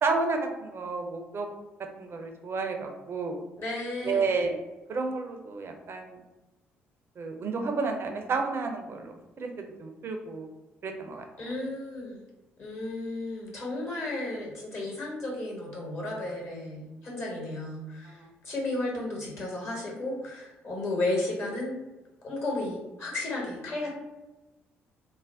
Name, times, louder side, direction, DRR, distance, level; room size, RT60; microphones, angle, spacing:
voice 1, 0.0-1.5 2.0-3.4 4.0-4.6 4.9-6.2 7.2-10.5 10.8-11.3 18.1-18.3, right 4 dB, 40° right, 4 dB, 0.5 m, -31 dB
voice 2, 3.6-4.4 11.4-12.2 12.6-21.8 22.2-23.9, left 2 dB, 40° left, -2 dB, 1.2 m, -33 dB
2.5 x 2.1 x 3.3 m, 1.1 s
figure-of-eight pair, 45°, 6 cm